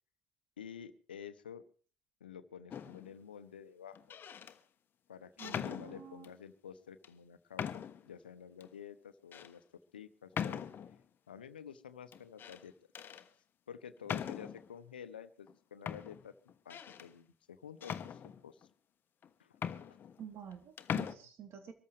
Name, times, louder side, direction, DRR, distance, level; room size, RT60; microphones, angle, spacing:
voice 1, 0.6-1.6 2.2-4.0 5.1-9.6 9.9-10.7 11.3-12.7 13.7-16.3 16.6-18.7 19.4-19.6 19.9-20.0, left 8 dB, 85° left, 12 dB, 0.9 m, -50 dB
sound 1, 2.7-3.1 4.0-4.6 5.4-6.4 7.0-7.1 7.6-8.1 8.6-8.7 9.3-9.5 10.3-11.0 12.1-12.6 12.9-13.3 14.1-14.7 15.5-15.6 15.9-17.1 17.8-18.7 19.2-19.3 19.5-20.5 20.8-21.1, left 8 dB, 45° left, 1.2 m, -40 dB
voice 2, 5.4-6.3 20.2-21.7, right 8 dB, 55° right, 6 dB, 3.2 m, -49 dB
24.5 x 14.0 x 3.3 m, 0.41 s
figure-of-eight pair, 55°, 5 cm